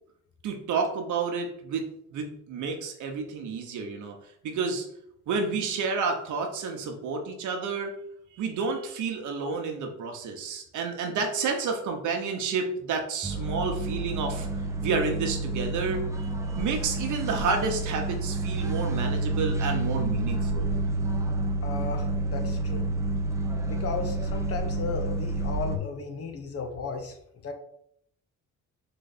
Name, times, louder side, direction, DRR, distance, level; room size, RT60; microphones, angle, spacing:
voice 1, 0.4-1.9 2.1-4.2 4.4-4.9 5.3-7.9 8.3-14.5 14.8-20.7, right 4 dB, 75° right, 3 dB, 1.0 m, -30 dB
sound 1, 13.2-25.8, right 2 dB, 10° right, 0.7 m, -29 dB
voice 2, 21.6-22.9 23.6-27.2 27.4-27.5, left 5 dB, 50° left, 5 dB, 1.0 m, -35 dB
3.9 x 3.3 x 4.1 m, 0.71 s
cardioid pair, 90°, 30 cm